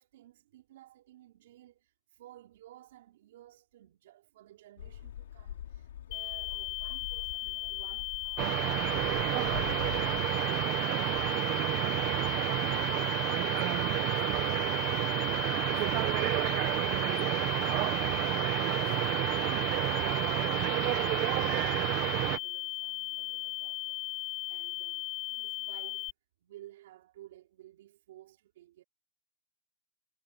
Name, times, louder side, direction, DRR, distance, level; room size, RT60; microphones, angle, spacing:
voice 1, 0.0-13.5 13.8-18.3 18.6-26.1 26.4-28.8, right 14 dB, 60° right, 5.3 m, -56 dB
sound 1, 4.8-10.3, left 11 dB, 85° left, 3.4 m, -44 dB
sound 2, 6.1-26.1, left 19 dB, 35° left, 2.7 m, -37 dB
sound 3, 8.4-22.4, right 21 dB, 35° right, 1.0 m, -30 dB
supercardioid pair, 160°, 0 cm